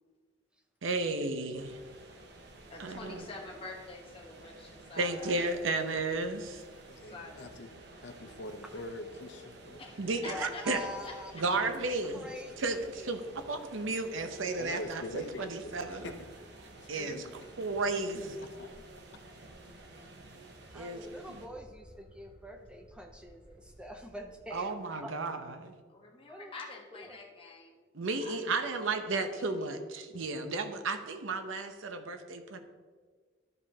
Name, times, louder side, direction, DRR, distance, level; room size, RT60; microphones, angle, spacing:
voice 1, 0.8-1.8 2.8-3.3 5.0-6.6 10.0-10.8 11.3-12.3 12.6-16.1 16.9-17.3 17.6-18.4 20.7-21.0 21.3-21.4 24.5-25.8 27.9-32.6, right 3 dB, 85° right, 8 dB, 0.7 m, -33 dB
sound 1, 1.6-21.5, right 2 dB, 55° right, 0.8 m, -52 dB
voice 2, 2.7-5.4 7.0-7.5 9.8-11.4 25.9-27.8 28.2-29.8, left 3 dB, 30° left, 0 dB, 1.0 m, -47 dB
voice 3, 6.9-7.7 8.0-9.8 12.3-12.6 14.6-16.1 16.8-17.3 18.5-18.8, left 1 dB, 65° left, 7 dB, 0.6 m, -44 dB
voice 4, 10.2-11.6 12.0-13.3 20.7-24.7 25.0-25.1 26.3-26.5 26.9-27.2, equal, 5° right, 3 dB, 0.5 m, -45 dB
sound 2, 19.5-19.6 19.9-20.5 20.8-24.8, equal, 30° right, 1.8 m, -58 dB
12.0 x 5.2 x 2.8 m, 1.5 s
head